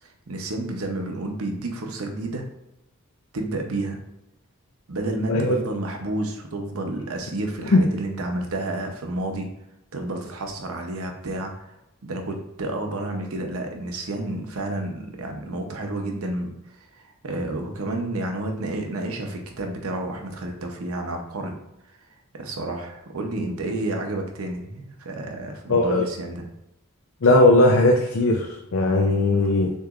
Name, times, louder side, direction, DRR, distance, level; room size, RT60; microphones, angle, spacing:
voice 1, 0.0-2.5 3.3-4.0 4.9-9.6 9.9-11.7 12.0-16.5 17.0-21.6 22.3-26.4, right 2 dB, 75° right, 3 dB, 0.8 m, -30 dB
voice 2, 25.7-26.1 27.2-29.7, left 2 dB, 65° left, 1 dB, 0.5 m, -18 dB
6.4 x 3.0 x 2.4 m, 0.86 s
head